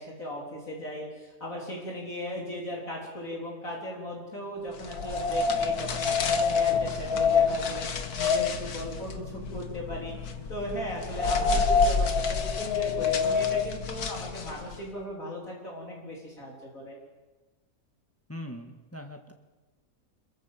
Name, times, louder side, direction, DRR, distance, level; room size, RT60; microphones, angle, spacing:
voice 1, 0.0-17.0, equal, 60° left, -2 dB, 4.5 m, -38 dB
sound 1, 4.8-14.8, left 5 dB, 80° left, 2.0 m, -27 dB
voice 2, 18.3-19.3, equal, 10° left, 3 dB, 1.9 m, -41 dB
26.5 x 22.0 x 7.5 m, 1.2 s
omnidirectional pair, 1.6 m